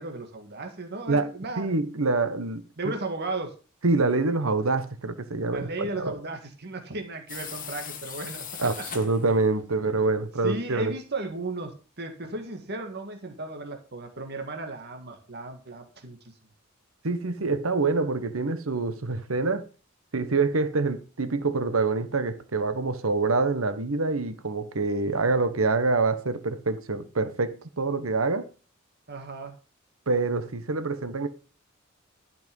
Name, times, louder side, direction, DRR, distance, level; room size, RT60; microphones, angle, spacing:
voice 1, 0.0-1.7 2.8-3.5 5.5-8.4 8.8-8.9 9.8-10.0 10.4-16.2 25.1-25.2 29.1-29.6, right 2 dB, 55° right, 1.9 m, -35 dB
voice 2, 1.6-2.6 3.8-6.1 8.6-10.9 17.0-19.6 20.1-28.5 30.1-31.3, right 3 dB, 80° right, 1.1 m, -26 dB
sound 1, 7.3-9.5, left 8 dB, 40° left, 1.5 m, -39 dB
12.0 x 6.0 x 5.3 m
head